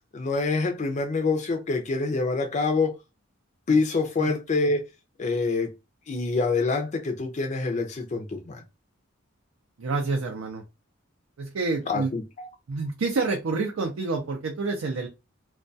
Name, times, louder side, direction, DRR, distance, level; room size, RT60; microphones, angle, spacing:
voice 1, 0.1-2.9 3.7-4.9 5.2-5.7 6.1-8.6 11.9-12.5, left 3 dB, 35° left, 0.4 m, -26 dB
voice 2, 9.8-10.6 11.4-12.1 12.7-15.1, right 3 dB, 85° right, 0.5 m, -28 dB
2.2 x 2.2 x 2.6 m
head